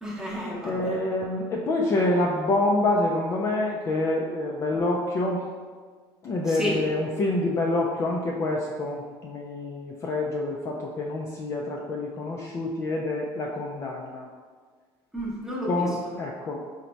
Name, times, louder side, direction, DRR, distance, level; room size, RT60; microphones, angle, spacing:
voice 1, 0.0-1.0 6.5-6.8 15.1-15.9, equal, 5° right, -5 dB, 0.8 m, -31 dB
voice 2, 0.6-5.4 6.2-14.3 15.7-16.7, left 2 dB, 30° left, -1 dB, 0.3 m, -27 dB
3.9 x 2.1 x 4.4 m, 1.5 s
cardioid pair, 160°, 9 cm